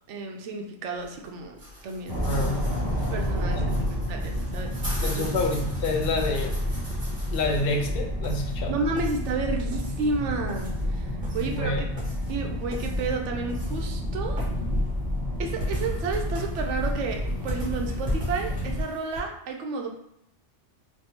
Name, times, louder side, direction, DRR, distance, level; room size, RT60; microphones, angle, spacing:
voice 1, 0.1-1.6 1.8-2.2 3.1-5.0 8.7-11.9 12.3-14.4 15.4-19.9, right 4 dB, 75° right, 2 dB, 0.9 m, -31 dB
sound 1, 1.0-19.2, equal, 50° right, 1.6 m, -41 dB
sound 2, 2.1-18.8, equal, 10° right, 0.5 m, -29 dB
voice 2, 2.2-2.7 3.5-3.9 5.0-6.7 7.3-8.8 11.4-11.8, left 2 dB, 60° left, 3 dB, 0.7 m, -28 dB
3.4 x 2.6 x 2.8 m, 0.77 s
omnidirectional pair, 1.2 m